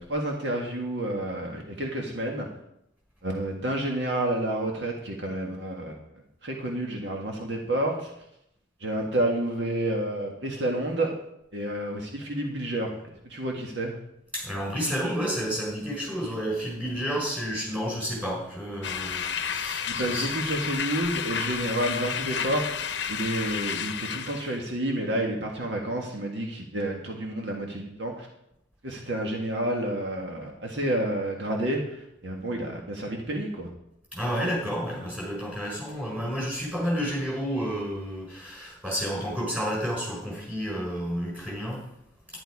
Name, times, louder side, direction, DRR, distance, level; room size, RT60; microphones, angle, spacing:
voice 1, 0.0-2.5 3.2-6.0 6.4-8.1 8.8-11.1 11.5-14.0 19.9-28.3 28.8-33.7, right 1 dB, 70° right, 1 dB, 1.8 m, -30 dB
voice 2, 14.3-20.3 34.1-41.8, equal, 10° right, -4 dB, 5.1 m, -30 dB
sound 1, 18.8-24.6, left 7 dB, 65° left, 0.8 m, -31 dB
11.5 x 10.5 x 4.8 m, 0.80 s
head